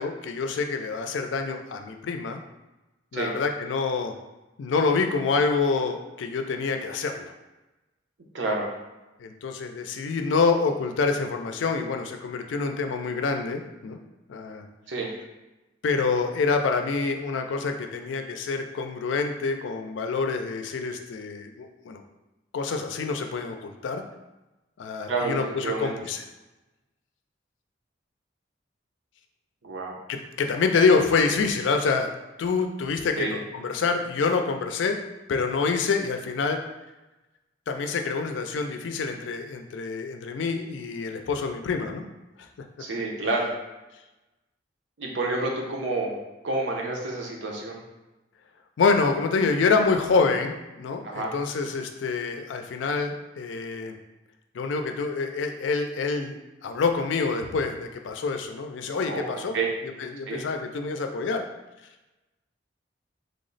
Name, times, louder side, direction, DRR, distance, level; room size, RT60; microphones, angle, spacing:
voice 1, 0.0-2.4 3.1-4.1 4.6-7.3 9.2-14.0 14.3-14.7 15.8-22.0 22.5-24.0 24.8-26.2 30.1-32.1 32.4-35.0 35.3-36.6 37.7-42.0 48.8-54.0 54.5-59.6 60.0-61.4, left 4 dB, 85° left, 5 dB, 0.4 m, -26 dB
voice 2, 8.3-8.7 14.9-15.1 25.1-26.0 29.6-29.9 33.2-33.4 42.8-43.5 45.0-46.2 46.4-47.8 51.0-51.3 58.9-59.7 60.3-60.4, right 3 dB, 85° right, -1 dB, 0.7 m, -29 dB
3.3 x 2.0 x 3.9 m, 1.1 s
head